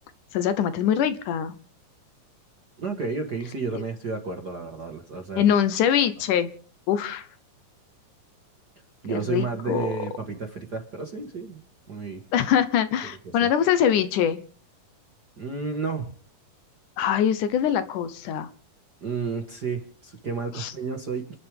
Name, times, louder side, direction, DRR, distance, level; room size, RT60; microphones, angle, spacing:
voice 1, 0.3-1.6 5.4-6.5 6.9-7.3 9.1-9.9 12.3-14.4 17.0-18.5 20.6-20.7, left 9 dB, 70° left, 12 dB, 2.3 m, -23 dB
voice 2, 2.8-5.5 9.0-12.2 13.0-13.5 15.4-16.1 19.0-21.2, right 4 dB, 45° right, 4 dB, 1.5 m, -31 dB
30.0 x 11.0 x 3.6 m, 0.43 s
omnidirectional pair, 3.9 m